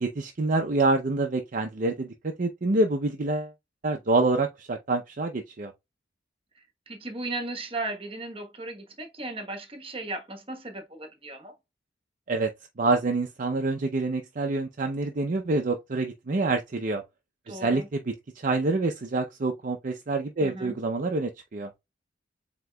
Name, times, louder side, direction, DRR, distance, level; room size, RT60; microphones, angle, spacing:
voice 1, 0.0-3.5 3.8-5.7 12.3-12.5 12.8-17.0 17.5-21.7, right 2 dB, 45° right, 0.5 m, -27 dB
voice 2, 6.9-11.5 17.5-17.9 20.4-20.7, right 2 dB, 30° right, 1.1 m, -36 dB
7.7 x 2.9 x 2.2 m
head